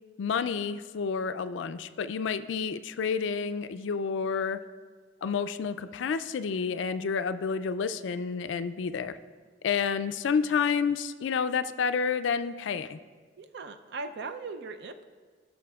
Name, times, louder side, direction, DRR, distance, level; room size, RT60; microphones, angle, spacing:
voice 1, 0.2-4.6 5.2-9.2 9.6-13.0, left 6 dB, 65° left, 11 dB, 0.3 m, -29 dB
voice 2, 13.4-15.1, right 3 dB, 60° right, 9 dB, 0.5 m, -39 dB
17.0 x 6.3 x 2.3 m, 1.6 s
head